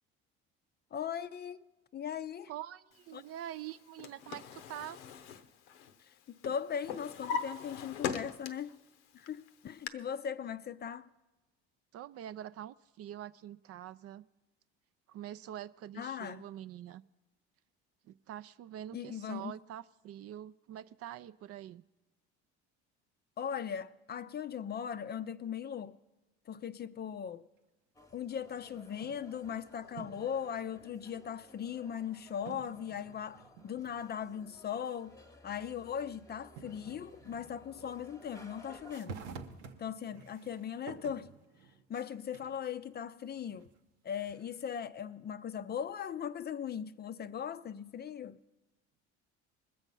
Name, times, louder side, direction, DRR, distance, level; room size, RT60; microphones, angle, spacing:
voice 1, 0.9-2.5 3.1-3.2 6.0-8.8 9.1-11.1 16.0-16.4 18.9-19.5 23.4-26.0 26.5-27.5 28.1-35.2 35.4-39.2 39.8-41.3 41.9-43.7 44.0-48.4, left 8 dB, 30° left, 0.4 m, -39 dB
voice 2, 2.5-5.0 11.9-14.2 15.1-17.0 18.0-21.8, right 11 dB, 45° right, 0.4 m, -45 dB
Drawer open or close, 3.7-6.1 6.4-8.8 9.2-9.9, left 7 dB, 90° left, 0.7 m, -40 dB
sound 1, 27.9-39.0, left 2 dB, 10° left, 1.0 m, -57 dB
sound 2, 28.6-29.4 29.8-30.4 31.1-31.2 32.5-34.4 34.7-34.8 36.0-36.1 36.6-38.4 38.8-42.6 43.1-44.7, right 5 dB, 90° right, 1.0 m, -51 dB
21.0 x 7.1 x 5.4 m
hypercardioid pair, 70°, 33 cm